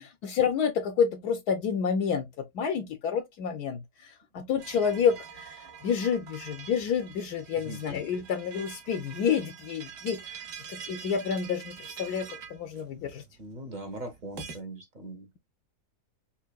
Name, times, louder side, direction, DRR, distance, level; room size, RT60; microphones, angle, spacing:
voice 1, 0.0-10.4 10.7-13.2, left 7 dB, 75° left, 1.2 m, -29 dB
sound 1, 4.6-14.6, right 7 dB, 85° right, 1.6 m, -45 dB
voice 2, 13.4-15.4, right 1 dB, 35° right, 0.9 m, -41 dB
5.7 x 2.4 x 2.3 m
omnidirectional pair, 1.8 m